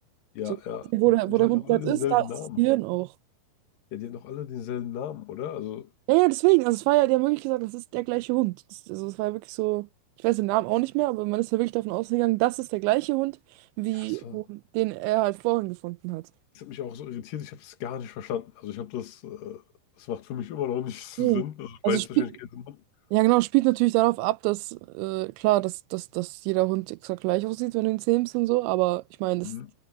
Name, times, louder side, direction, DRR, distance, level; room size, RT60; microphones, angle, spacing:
voice 1, 0.3-0.9 1.3-2.6 3.9-5.9 13.9-14.4 16.5-19.6 20.0-22.8 29.4-29.7, left 10 dB, 60° left, 3.0 m, -34 dB
voice 2, 0.9-2.2 2.6-3.1 6.1-8.6 8.9-9.9 10.2-13.4 13.8-16.2 21.2-21.4 21.8-22.2 23.1-29.5, right 21 dB, 85° right, 3.0 m, -25 dB
omnidirectional pair, 5.2 m